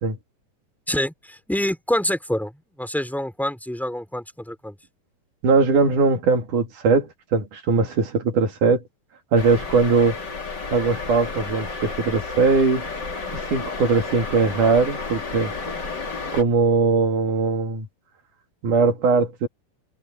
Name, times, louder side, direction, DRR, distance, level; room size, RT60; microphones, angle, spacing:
voice 1, 0.9-2.5 2.8-4.8, left 1 dB, ahead, 2.8 m, -26 dB
voice 2, 5.4-8.8 9.3-10.2 10.7-12.9 13.3-15.5 16.3-17.9 18.6-19.5, right 4 dB, 60° right, 3.9 m, -20 dB
sound 1, 9.4-16.4, left 4 dB, 30° left, 3.1 m, -32 dB
omnidirectional pair, 4.2 m